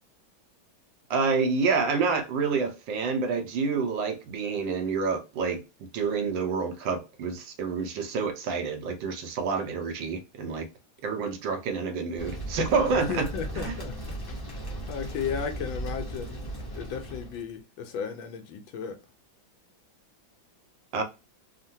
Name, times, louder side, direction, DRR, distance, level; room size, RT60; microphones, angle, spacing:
voice 1, 1.1-5.6 5.9-10.7 11.0-13.3 13.5-13.8 20.9-21.0, right 4 dB, 75° right, 1.3 m, -28 dB
sound 1, 12.2-17.4, right 1 dB, 25° left, 0.4 m, -37 dB
voice 2, 13.1-13.9 14.9-16.4 16.8-19.0, left 7 dB, 80° left, 1.4 m, -34 dB
3.6 x 2.1 x 2.7 m
omnidirectional pair, 2.2 m